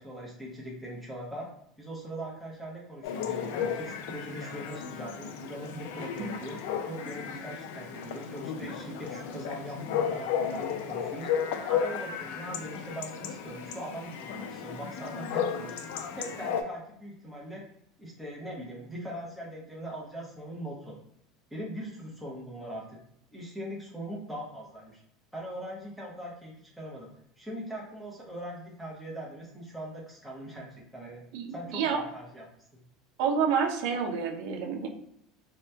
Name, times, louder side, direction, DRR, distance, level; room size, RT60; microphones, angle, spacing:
voice 1, 0.0-1.5 1.8-6.6 6.9-11.3 11.7-15.8 16.1-17.6 18.0-21.0 21.5-23.0 23.3-25.0 25.3-27.1 27.4-31.2 31.5-32.4 32.7-32.8, equal, ahead, -4 dB, 0.8 m, -41 dB
Chatter / Bark / Livestock farm animals working animals, 3.0-16.6, left 8 dB, 80° left, 0.4 m, -34 dB
voice 2, 31.3-32.0 33.2-34.9, right 6 dB, 70° right, 3 dB, 0.6 m, -28 dB
2.8 x 2.2 x 3.3 m, 0.71 s
supercardioid pair, 140°, 0 cm